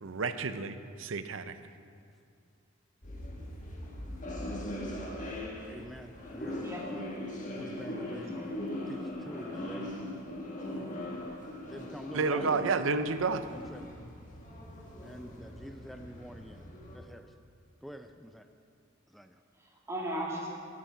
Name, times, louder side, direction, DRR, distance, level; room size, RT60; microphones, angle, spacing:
voice 1, 0.0-1.6 12.1-13.4, right 4 dB, 75° right, 11 dB, 0.6 m, -30 dB
sound 1, 3.0-17.0, left 1 dB, 40° left, 1.6 m, -40 dB
voice 2, 5.7-6.7 7.0-7.2 7.5-8.4 8.9-10.0 11.6-12.5 13.5-13.9 15.0-17.3 17.8-18.5 19.1-19.4, equal, ahead, 7 dB, 0.4 m, -47 dB
voice 3, 6.6-7.0 8.1-8.5 19.5-20.6, right 1 dB, 15° right, -3 dB, 2.1 m, -38 dB
13.5 x 8.5 x 5.8 m, 2.3 s
head